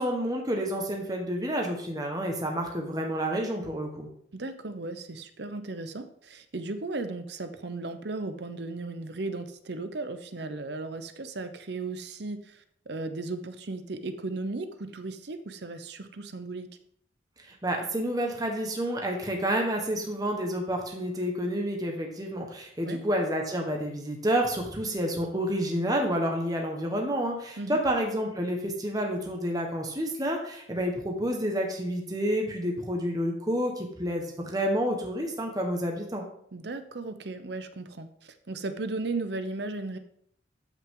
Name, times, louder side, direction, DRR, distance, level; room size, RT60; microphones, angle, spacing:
voice 1, 0.0-4.1 17.5-36.2, equal, 20° right, 1 dB, 1.4 m, -29 dB
voice 2, 4.3-16.7 22.8-23.0 27.6-27.8 36.5-40.0, right 3 dB, 60° right, 9 dB, 0.8 m, -36 dB
13.5 x 5.8 x 3.8 m, 0.67 s
head